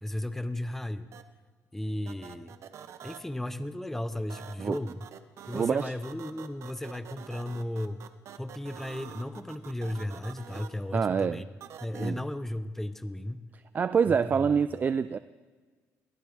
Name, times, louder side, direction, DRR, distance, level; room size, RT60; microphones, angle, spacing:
voice 1, 0.0-1.1 1.7-2.5 3.0-5.1 5.5-8.0 8.4-11.5 11.8-13.4 14.1-14.5, left 1 dB, 5° left, 12 dB, 0.8 m, -35 dB
sound 1, 1.1-1.2 2.1-3.2 4.3-10.7 11.6-12.1, right 9 dB, 55° right, 1.0 m, -46 dB
voice 2, 5.5-5.9 10.9-11.4 11.9-12.2 13.7-15.2, right 6 dB, 30° right, 13 dB, 0.4 m, -26 dB
23.0 x 16.0 x 3.5 m, 1.5 s
cardioid pair, 125°, 6 cm